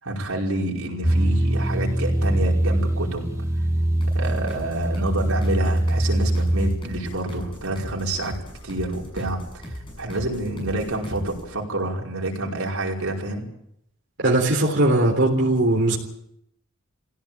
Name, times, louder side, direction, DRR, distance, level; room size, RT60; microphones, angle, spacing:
voice 1, 0.0-3.2 4.1-8.3 8.6-13.4, right 1 dB, 85° right, -1 dB, 5.1 m, -28 dB
sound 1, 1.0-6.8, right 1 dB, 15° right, 2.0 m, -23 dB
sound 2, 4.0-11.5, equal, 25° left, 6.9 m, -38 dB
voice 2, 14.2-16.0, right 1 dB, 55° right, -2 dB, 3.8 m, -19 dB
19.5 x 16.5 x 8.9 m, 0.77 s
head